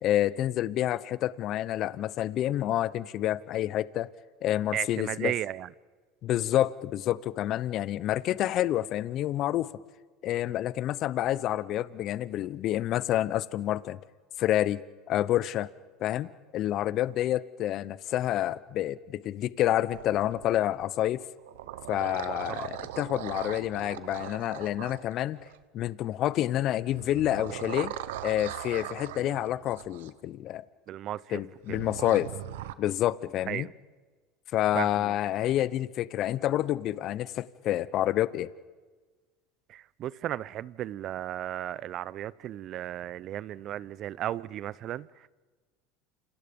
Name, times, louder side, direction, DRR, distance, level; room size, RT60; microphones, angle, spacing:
voice 1, 0.0-4.1 4.4-5.3 6.2-9.7 10.2-14.0 14.4-14.8 15.1-15.7 16.0-21.2 21.9-25.4 25.7-27.9 28.2-30.6 31.3-32.3 32.8-33.7 34.5-38.5, left 13 dB, 55° left, 0.8 m, -28 dB
voice 2, 4.7-5.7 22.5-22.7 30.9-31.4 31.7-31.8 33.5-33.7 34.7-35.2 39.7-45.3, right 12 dB, 50° right, 0.7 m, -35 dB
sound 1, 19.9-20.9 21.4-25.6 26.9-30.1 31.7-32.7, right 13 dB, 80° right, 1.0 m, -40 dB
29.5 x 27.5 x 5.3 m
hypercardioid pair, 90°, 0 cm